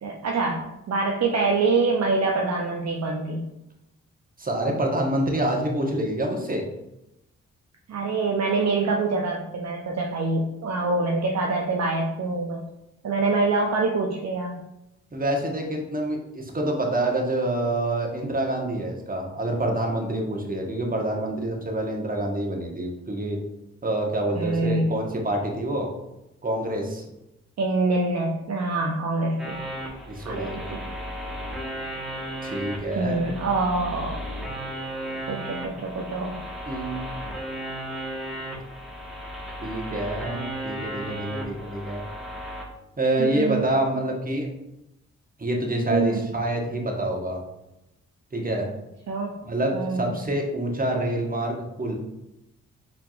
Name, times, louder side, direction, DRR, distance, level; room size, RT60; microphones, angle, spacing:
voice 1, 0.0-3.5 7.9-12.7 13.0-14.6 24.3-24.9 27.6-29.6 30.2-30.8 33.0-34.3 35.3-36.4 43.2-43.7 45.9-46.2 49.1-49.4 49.7-50.0, right 3 dB, 45° right, 0 dB, 0.7 m, -25 dB
voice 2, 4.4-6.6 15.1-23.4 23.8-25.9 26.4-27.0 30.1-30.7 32.4-33.2 36.6-37.1 39.6-42.0 43.0-44.5 45.4-47.4 48.3-48.7 49.4-51.9, right 1 dB, 25° right, 1 dB, 1.2 m, -27 dB
sound 1, 29.4-42.6, right 1 dB, ahead, 1.4 m, -35 dB
4.7 x 3.4 x 2.4 m, 0.91 s
hypercardioid pair, 40°, 36 cm